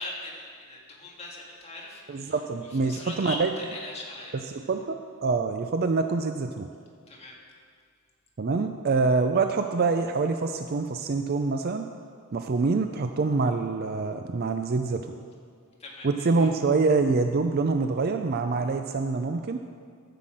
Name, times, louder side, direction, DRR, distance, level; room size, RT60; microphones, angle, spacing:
voice 1, 0.0-4.4 7.1-7.3 15.8-16.5, left 2 dB, 30° left, -3 dB, 1.9 m, -40 dB
voice 2, 2.1-3.5 4.3-6.7 8.4-11.9 12.3-15.2 16.0-19.6, right 4 dB, 45° right, 6 dB, 0.4 m, -26 dB
14.0 x 5.7 x 7.6 m, 2.1 s
head